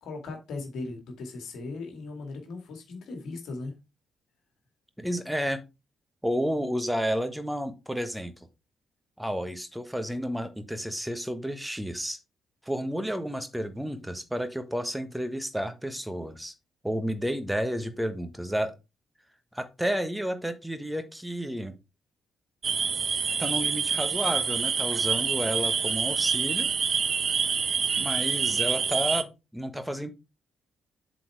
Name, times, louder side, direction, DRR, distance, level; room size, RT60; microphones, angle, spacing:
voice 1, 0.0-3.7, left 3 dB, 60° left, 2.1 m, -38 dB
voice 2, 5.0-5.6 6.2-8.3 9.2-12.2 12.6-16.5 16.8-18.7 19.5-21.7 23.4-26.7 28.0-30.1, equal, 5° right, 1.3 m, -31 dB
sound 1, 22.6-29.2, right 6 dB, 45° right, 0.5 m, -27 dB
7.6 x 4.2 x 4.6 m
figure-of-eight pair, 40°, 0 cm